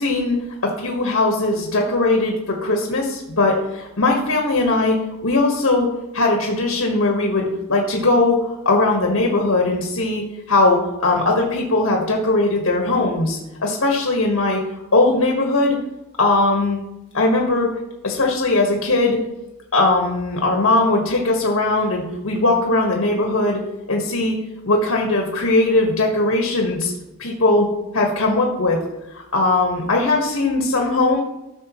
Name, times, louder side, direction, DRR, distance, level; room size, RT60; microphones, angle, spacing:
voice 1, 0.0-14.6 14.9-15.8 16.2-16.8 17.1-17.8 18.0-19.2 19.7-23.6 23.9-24.4 24.6-26.9 27.2-28.8 29.1-31.2, left 2 dB, 75° left, 0 dB, 1.6 m, -19 dB
14.0 x 6.5 x 3.1 m, 0.96 s
head